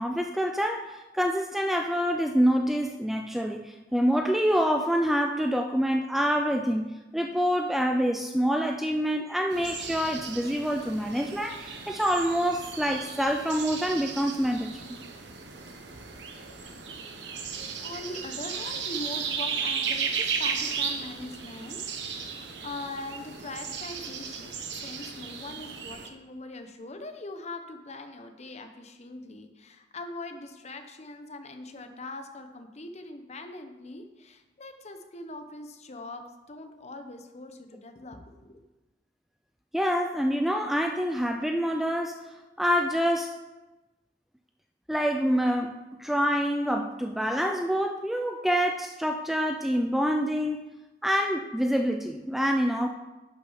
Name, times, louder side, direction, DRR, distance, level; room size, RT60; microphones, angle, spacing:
voice 1, 0.0-14.9 39.7-42.2 42.6-43.3 44.9-50.7 51.0-52.9, equal, ahead, 4 dB, 0.4 m, -26 dB
sound 1, 9.5-26.1, right 6 dB, 70° right, 1.2 m, -35 dB
voice 2, 17.8-21.8 22.1-38.6, left 2 dB, 40° left, 7 dB, 1.0 m, -41 dB
11.0 x 6.3 x 5.0 m, 1.1 s
head